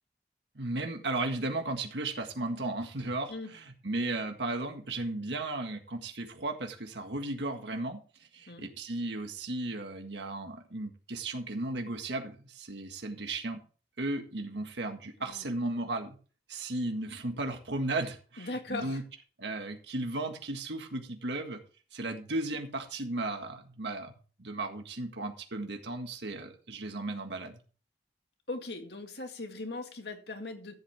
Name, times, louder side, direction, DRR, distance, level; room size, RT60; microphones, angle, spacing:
voice 1, 0.6-13.6 14.0-16.2 16.5-19.0 19.4-21.6 21.9-24.1 24.4-27.6, right 2 dB, 85° right, 1.8 m, -35 dB
voice 2, 18.4-19.0 28.5-30.7, left 2 dB, 70° left, 2.1 m, -39 dB
14.0 x 8.4 x 3.6 m
head